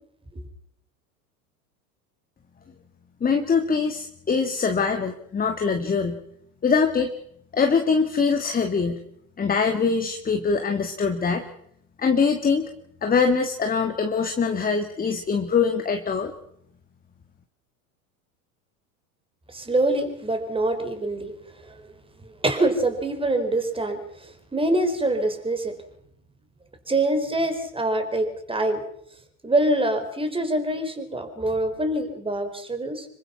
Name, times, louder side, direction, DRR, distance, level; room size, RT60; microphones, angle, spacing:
voice 1, 3.2-6.2 6.6-7.1 7.5-9.0 9.4-11.4 12.0-12.7 13.0-16.3, left 5 dB, 20° left, 6 dB, 1.9 m, -23 dB
voice 2, 19.5-21.8 22.2-25.8 26.9-28.8 29.4-33.1, right 1 dB, 10° right, 7 dB, 4.7 m, -25 dB
26.0 x 23.5 x 5.9 m, 0.69 s
hypercardioid pair, 100°, 44 cm